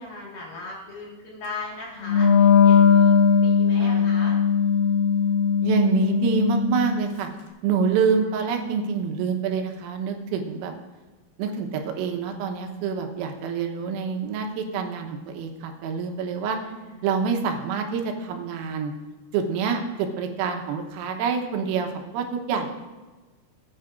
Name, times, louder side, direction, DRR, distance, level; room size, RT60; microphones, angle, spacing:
voice 1, 0.0-4.4 16.6-17.0 19.7-19.8, left 3 dB, 60° left, -4 dB, 3.1 m, -38 dB
Wind instrument woodwind instrument, 2.0-7.1, left 6 dB, 75° left, 3.8 m, -19 dB
voice 2, 3.8-4.2 5.6-7.3 7.6-10.7 11.4-16.6 17.0-18.9 19.3-22.7, right 6 dB, 85° right, 4 dB, 3.7 m, -26 dB
19.5 x 9.4 x 2.5 m, 1.2 s
omnidirectional pair, 5.9 m